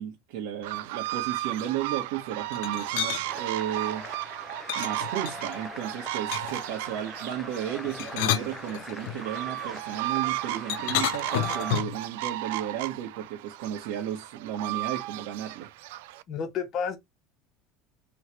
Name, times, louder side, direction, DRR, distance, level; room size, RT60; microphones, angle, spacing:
voice 1, 0.0-4.0 4.7-15.7, right 10 dB, 70° right, 1.2 m, -34 dB
sound 1, 0.6-16.2, right 16 dB, 85° right, 0.3 m, -34 dB
sound 2, 2.5-3.2 4.7-5.6 6.3-6.7 7.8-9.2 10.7-12.0, left 13 dB, 75° left, 0.5 m, -30 dB
sound 3, 3.2-11.8, left 1 dB, 5° left, 0.5 m, -43 dB
voice 2, 16.3-17.0, left 6 dB, 35° left, 1.1 m, -31 dB
3.2 x 3.2 x 4.3 m
cardioid pair, 165°, 0 cm